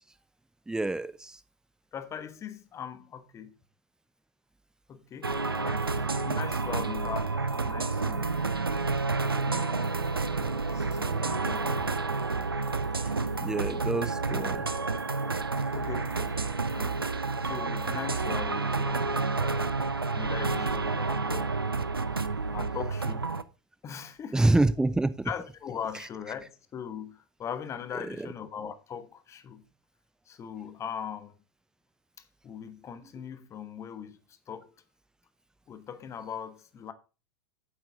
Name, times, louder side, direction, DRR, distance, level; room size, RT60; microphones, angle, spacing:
voice 1, 0.7-1.4 13.4-14.7 24.3-25.3 28.1-28.3, right 2 dB, 5° right, 0.7 m, -27 dB
voice 2, 1.9-3.5 4.9-8.3 9.2-11.9 15.7-16.9 17.4-21.6 22.5-23.3 23.8-24.4 25.2-29.7 30.3-31.4 32.2-34.8 35.7-36.9, left 8 dB, 25° left, 1.3 m, -41 dB
sound 1, 5.2-23.4, right 3 dB, 85° right, 0.7 m, -30 dB
8.7 x 8.1 x 3.7 m
figure-of-eight pair, 90°, 12 cm